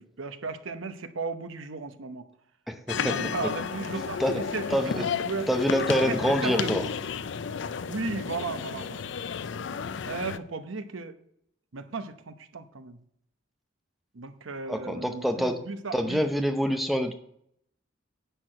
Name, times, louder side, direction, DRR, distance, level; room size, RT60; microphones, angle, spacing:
voice 1, 0.0-2.3 3.0-5.5 6.0-6.2 6.4-6.9 7.9-9.1 10.1-11.2 11.7-13.0 14.1-16.3, right 4 dB, 80° right, 9 dB, 0.9 m, -35 dB
voice 2, 2.7-3.1 4.2-4.4 4.7-5.0 5.5-6.8 14.7-15.6 15.9-17.1, equal, ahead, 5 dB, 0.7 m, -26 dB
sound 1, 2.9-10.4, left 6 dB, 65° left, 0.4 m, -32 dB
10.0 x 4.6 x 7.8 m, 0.71 s
head